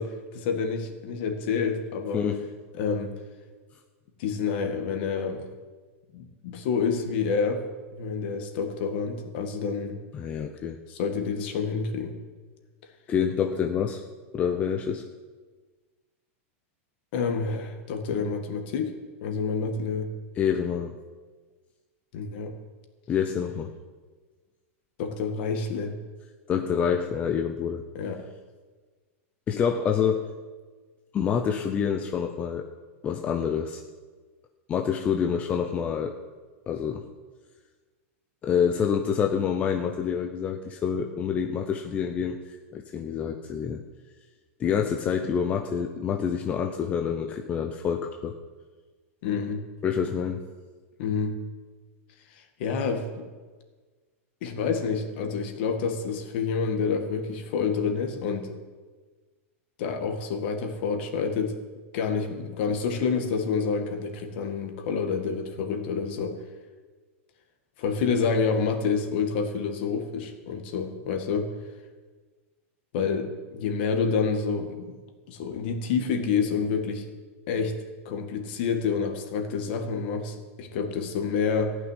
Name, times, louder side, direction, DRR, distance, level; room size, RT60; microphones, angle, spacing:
voice 1, 0.0-2.3 2.8-3.1 4.2-5.5 6.1-7.6 7.9-10.0 10.9-12.1 17.1-18.9 19.2-20.1 22.1-22.5 25.0-25.9 27.9-28.2 49.2-49.6 51.0-51.4 52.6-53.2 54.4-58.6 59.8-61.5 61.9-66.4 67.8-71.5 72.9-75.0 75.3-77.0 77.5-77.7 78.1-81.8, left 5 dB, 50° left, 5 dB, 1.9 m, -28 dB
voice 2, 2.1-2.5 10.1-10.8 13.1-14.0 14.3-15.0 20.4-20.9 23.1-23.7 26.5-27.8 29.5-30.2 31.1-32.7 33.0-33.8 34.7-36.1 36.7-37.1 38.4-43.8 44.6-48.4 49.8-50.4, left 7 dB, 20° left, 3 dB, 0.6 m, -27 dB
14.5 x 6.2 x 9.8 m, 1.4 s
supercardioid pair, 160°, 8 cm